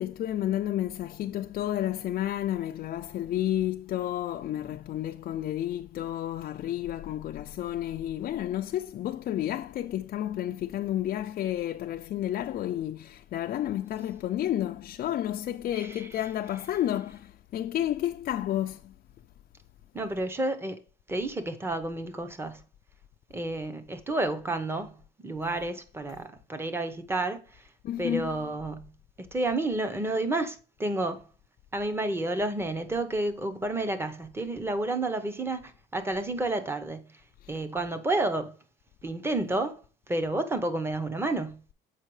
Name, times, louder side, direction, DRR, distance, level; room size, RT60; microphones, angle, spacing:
voice 1, 0.0-18.9 27.8-28.4, left 12 dB, 45° left, 0.4 m, -31 dB
voice 2, 15.7-16.1 19.9-20.8 21.1-22.6 23.3-25.0 25.2-27.4 28.0-28.9 29.2-31.2 31.7-37.1 37.5-38.5 39.0-39.8 40.1-41.6, right 2 dB, 10° right, 0.8 m, -30 dB
7.4 x 5.3 x 3.2 m
cardioid pair, 145°, 20 cm